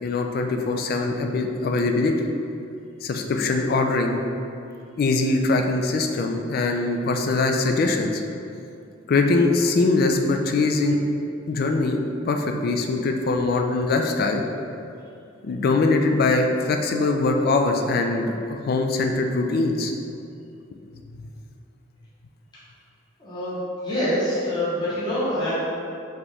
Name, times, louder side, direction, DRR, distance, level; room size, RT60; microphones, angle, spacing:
voice 1, 0.0-2.1 3.0-4.2 5.0-8.2 9.1-11.0 11.5-12.0 12.3-14.4 15.4-19.9, left 3 dB, 50° left, 4 dB, 0.3 m, -22 dB
voice 2, 23.2-23.6 23.8-25.6, equal, 25° left, -12 dB, 1.1 m, -25 dB
4.3 x 3.0 x 3.3 m, 2.6 s
head